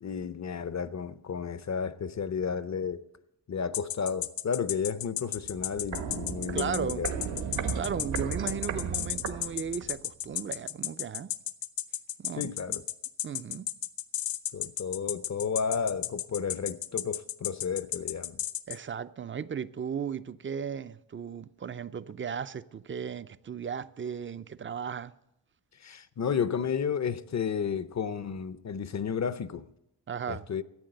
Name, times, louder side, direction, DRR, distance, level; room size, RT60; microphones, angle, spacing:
voice 1, 0.0-3.0 3.5-7.1 12.4-12.8 14.5-18.4 25.8-29.7 30.3-30.6, left 6 dB, 40° left, 0.6 m, -32 dB
sound 1, 3.7-18.8, left 12 dB, 80° left, 0.8 m, -33 dB
Walk footsteps, 5.3-10.0 10.3-10.4, right 6 dB, 80° right, 1.5 m, -35 dB
voice 2, 6.5-7.1 7.7-11.3 12.2-12.6 13.2-13.7 18.7-25.1 30.1-30.5, right 7 dB, 30° right, 0.4 m, -36 dB
14.0 x 8.8 x 7.7 m
wide cardioid pair, 115°, 45 cm